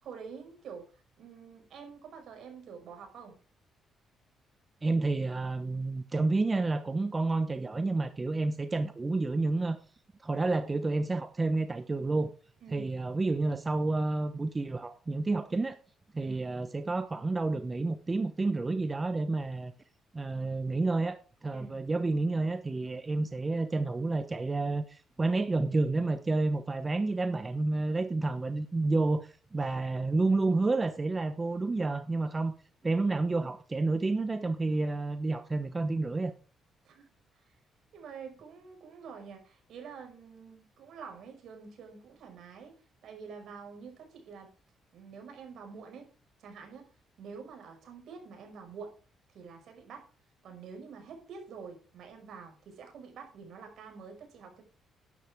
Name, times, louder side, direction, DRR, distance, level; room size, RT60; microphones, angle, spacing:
voice 1, 0.0-3.4 12.6-12.9 16.2-16.4 21.5-21.7 36.8-37.1 37.4-37.6 37.9-42.8 43.0-44.5 44.9-46.1 46.4-46.9 47.2-48.9 49.3-50.1 50.4-54.6, right 5 dB, 70° right, 3 dB, 5.6 m, -47 dB
voice 2, 4.8-9.8 10.2-12.3 12.7-15.8 16.1-19.7 20.1-32.5 32.8-36.3, right 3 dB, 25° right, 10 dB, 1.0 m, -30 dB
11.5 x 11.0 x 3.7 m, 0.37 s
cardioid pair, 90°, 0 cm